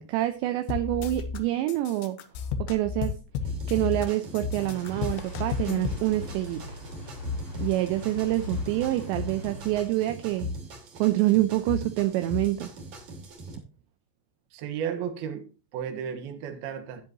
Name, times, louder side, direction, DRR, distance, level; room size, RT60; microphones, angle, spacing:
voice 1, 0.0-2.2 2.6-3.2 3.7-6.8 7.6-10.5 11.0-12.7, right 15 dB, 80° right, 2.8 m, -26 dB
sound 1, 0.7-1.4 1.7-4.1 4.3-6.0, left 6 dB, 80° left, 3.2 m, -32 dB
sound 2, 3.4-13.5, left 2 dB, 45° right, 3.6 m, -38 dB
sound 3, 4.6-9.9, left 2 dB, 35° left, 3.0 m, -40 dB
voice 2, 14.5-17.0, right 8 dB, 65° right, 2.9 m, -34 dB
10.5 x 10.5 x 3.0 m
omnidirectional pair, 5.4 m